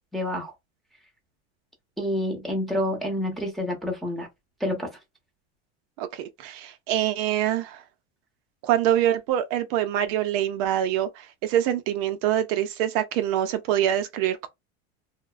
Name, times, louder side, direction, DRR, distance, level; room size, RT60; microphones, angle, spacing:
voice 1, 0.1-0.5 2.0-4.3 4.6-4.9, left 1 dB, ahead, 0.7 m, -28 dB
voice 2, 6.0-7.8 8.6-14.5, right 11 dB, 55° right, 0.4 m, -25 dB
2.7 x 2.0 x 2.3 m
supercardioid pair, 130°, 31 cm